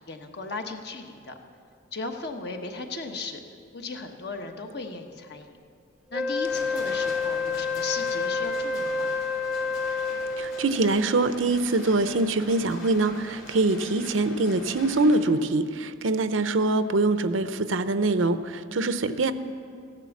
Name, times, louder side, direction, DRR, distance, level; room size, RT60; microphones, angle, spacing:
voice 1, 0.1-1.4 1.9-3.4 3.7-5.6 6.1-9.2, left 3 dB, 55° left, 4 dB, 1.2 m, -36 dB
Wind instrument woodwind instrument, 6.1-10.9, left 4 dB, 5° right, 0.5 m, -28 dB
sound 1, 6.4-15.2, left 2 dB, 80° left, 3.4 m, -43 dB
voice 2, 10.4-19.3, right 2 dB, 80° right, 11 dB, 0.7 m, -24 dB
15.0 x 11.5 x 7.2 m, 2.4 s
head